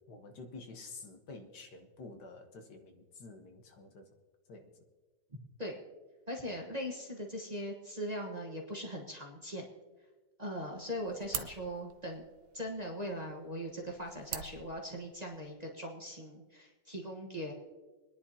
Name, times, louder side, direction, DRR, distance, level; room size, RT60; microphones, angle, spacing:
voice 1, 0.1-4.1 4.5-4.7, left 3 dB, 65° left, 4 dB, 1.7 m, -49 dB
voice 2, 6.3-9.7 10.4-12.3 12.5-17.5, equal, 25° right, -1 dB, 1.2 m, -40 dB
sound 1, 10.5-15.5, right 10 dB, 75° right, 1.3 m, -46 dB
25.0 x 10.5 x 2.8 m, 1.3 s
omnidirectional pair, 1.9 m